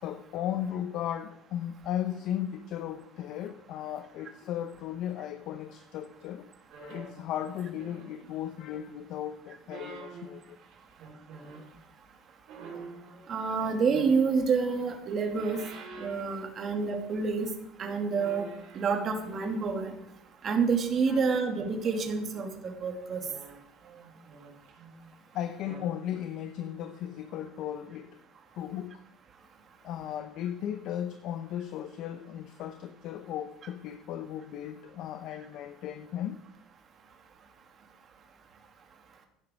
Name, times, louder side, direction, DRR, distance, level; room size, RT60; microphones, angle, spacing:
voice 1, 0.0-6.5 6.8-10.6 15.5-15.6 21.1-21.2 25.3-28.2 28.5-29.0 29.8-36.4, left 10 dB, 60° left, 0.9 m, -36 dB
sound 1, 6.7-8.5 9.5-11.7 12.5-14.5 15.0-17.0 17.3-17.5 18.2-20.2 21.1-22.4 23.1-25.1 25.5-25.9 26.4-26.5, right 4 dB, 65° right, 4.4 m, -49 dB
voice 2, 13.3-15.6 16.0-17.5 17.8-18.5 18.7-19.9 20.4-23.2, right 5 dB, 40° right, 2.7 m, -28 dB
14.5 x 11.0 x 4.6 m
supercardioid pair, 120°, 0 cm